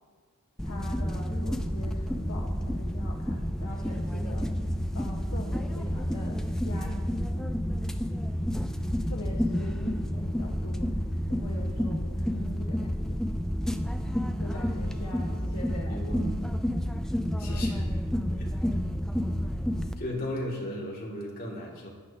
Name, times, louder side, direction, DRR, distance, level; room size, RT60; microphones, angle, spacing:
voice 1, 0.6-4.5 4.9-7.5 9.1-11.0 11.3-13.1 14.4-16.3 17.4-17.6, left 1 dB, 75° left, -2 dB, 1.4 m, -43 dB
sound 1, 0.6-19.9, equal, 5° left, 0.5 m, -30 dB
voice 2, 15.9-16.4 17.4-17.8 18.1-18.5 19.5-19.6 20.0-21.9, equal, 45° left, -3 dB, 2.5 m, -36 dB
15.5 x 11.0 x 2.9 m, 1.5 s
head